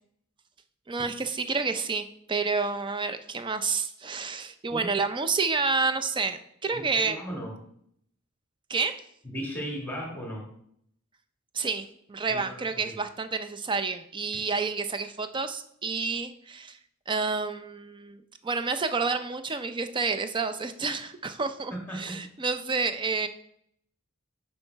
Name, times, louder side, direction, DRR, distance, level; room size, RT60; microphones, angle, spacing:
voice 1, 0.9-7.2 8.7-8.9 11.5-16.8 17.1-23.3, right 4 dB, 25° right, 10 dB, 0.5 m, -29 dB
voice 2, 6.7-7.5 9.2-10.5 12.3-13.0 14.3-14.4 21.7-22.1, equal, 10° left, -1 dB, 1.6 m, -36 dB
6.9 x 5.6 x 4.5 m, 0.70 s
head